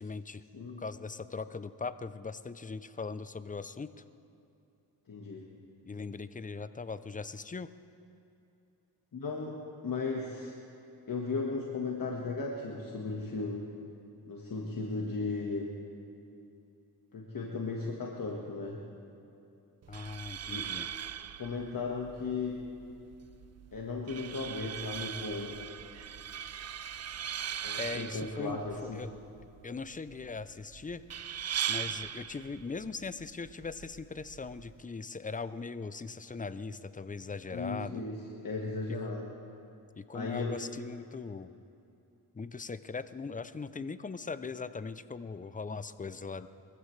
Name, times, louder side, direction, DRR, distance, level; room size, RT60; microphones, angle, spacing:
voice 1, 0.0-0.4 0.8-3.9 5.8-7.7 19.9-20.9 27.8-29.1 29.6-31.0 31.7-38.0 39.9-41.5 42.3-46.5, left 4 dB, 20° left, 13 dB, 0.5 m, -40 dB
voice 2, 5.1-5.4 9.1-10.5 11.1-13.6 14.3-15.7 17.1-18.8 20.5-20.7 21.4-22.7 23.7-25.6 27.6-29.1 37.5-38.1 38.4-39.2 40.1-40.6 46.4-46.5, left 3 dB, 55° left, -2 dB, 1.6 m, -36 dB
sound 1, 19.8-34.8, right 9 dB, 40° right, 0.4 m, -40 dB
23.0 x 15.0 x 3.2 m, 2.7 s
cardioid pair, 80°, 40 cm